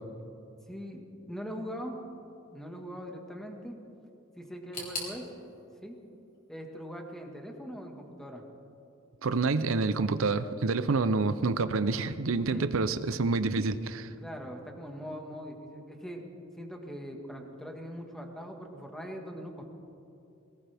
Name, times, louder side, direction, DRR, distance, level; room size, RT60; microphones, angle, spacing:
voice 1, 0.7-1.0 1.3-2.0 2.5-3.8 4.4-5.3 5.8-5.9 6.5-8.4 12.5-12.7 14.2-16.3 16.6-19.7, equal, ahead, 2 dB, 1.6 m, -41 dB
sound 1, 4.7-7.6 7.9-8.7 9.0-9.1 9.9-10.0, left 2 dB, 45° left, 4.4 m, -44 dB
voice 2, 9.2-14.1, right 3 dB, 75° right, 12 dB, 0.6 m, -28 dB
21.0 x 18.5 x 3.5 m, 2.8 s
head